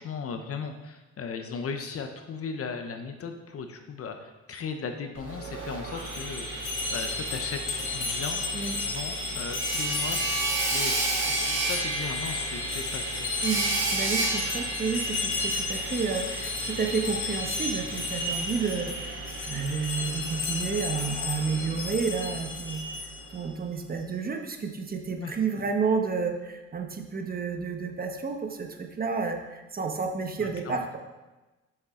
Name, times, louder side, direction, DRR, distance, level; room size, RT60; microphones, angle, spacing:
voice 1, 0.0-13.3 25.2-25.3 30.4-30.9, left 5 dB, 50° left, 6 dB, 0.7 m, -37 dB
Sawing, 5.1-23.0, right 2 dB, 80° right, 2.7 m, -33 dB
sound 1, 5.9-23.3, left 3 dB, 90° left, 2.4 m, -34 dB
voice 2, 13.4-18.9 19.5-22.8 23.3-31.0, right 5 dB, 30° right, 4 dB, 1.0 m, -30 dB
6.9 x 6.7 x 3.7 m, 1.1 s
cardioid pair, 90°, 30 cm